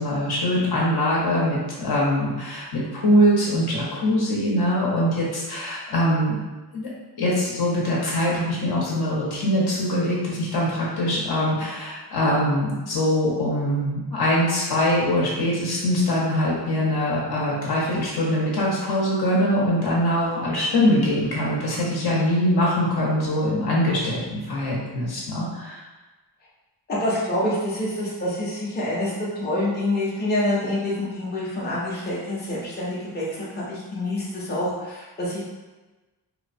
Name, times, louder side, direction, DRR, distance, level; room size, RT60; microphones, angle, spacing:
voice 1, 0.0-6.4 6.7-6.9 7.2-25.8, equal, 65° left, -5 dB, 0.9 m, -23 dB
voice 2, 26.9-35.4, left 1 dB, 25° left, -7 dB, 0.6 m, -27 dB
3.0 x 2.1 x 2.5 m, 1.2 s
wide cardioid pair, 165°, 41 cm